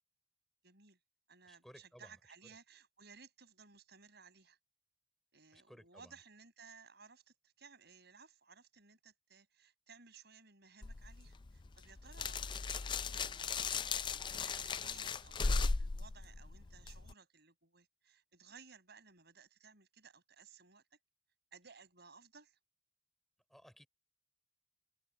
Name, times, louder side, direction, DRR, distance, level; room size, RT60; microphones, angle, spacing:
voice 1, 0.6-1.0 1.3-4.6 5.3-21.0 21.5-22.6, right 5 dB, 60° right, 5.9 m, -60 dB
voice 2, 1.4-2.6 5.5-6.2 23.5-23.9, equal, ahead, 3.5 m, -59 dB
sound 1, 10.8-17.1, left 4 dB, 25° left, 0.4 m, -37 dB
head